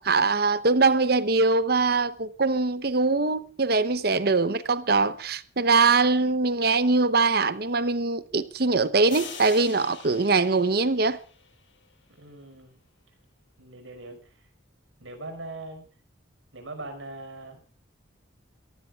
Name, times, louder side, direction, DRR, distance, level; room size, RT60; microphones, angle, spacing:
voice 1, 0.0-11.2, right 3 dB, 55° right, 0.9 m, -22 dB
sound 1, 9.1-11.8, left 6 dB, 80° left, 7.2 m, -43 dB
voice 2, 12.2-12.8 13.6-14.5 15.0-15.9 16.5-17.6, right 2 dB, 85° right, 5.2 m, -41 dB
27.0 x 15.5 x 2.4 m
head